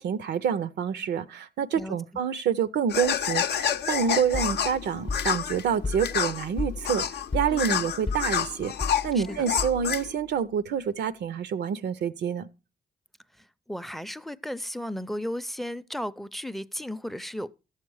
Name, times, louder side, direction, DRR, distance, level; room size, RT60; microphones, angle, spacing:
voice 1, 0.0-12.5, right 7 dB, 80° right, 0.5 m, -27 dB
sound 1, 2.9-10.1, left 8 dB, 75° left, 0.6 m, -29 dB
sound 2, 4.3-10.1, left 4 dB, 30° left, 0.7 m, -35 dB
voice 2, 7.5-7.9 9.1-9.4 13.4-17.5, equal, ahead, 0.4 m, -35 dB
11.5 x 7.3 x 4.6 m
cardioid pair, 75°, 17 cm